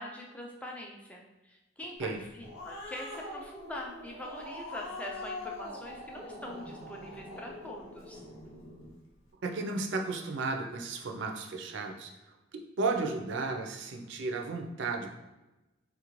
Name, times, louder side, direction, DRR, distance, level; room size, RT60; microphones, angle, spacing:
voice 1, 0.0-8.2, left 1 dB, 5° left, -1 dB, 0.3 m, -43 dB
Growling, 2.1-8.9, left 2 dB, 85° left, 0.8 m, -43 dB
voice 2, 9.4-12.1 12.8-15.1, right 3 dB, 60° right, 3 dB, 0.4 m, -33 dB
3.6 x 2.5 x 3.0 m, 1.0 s
head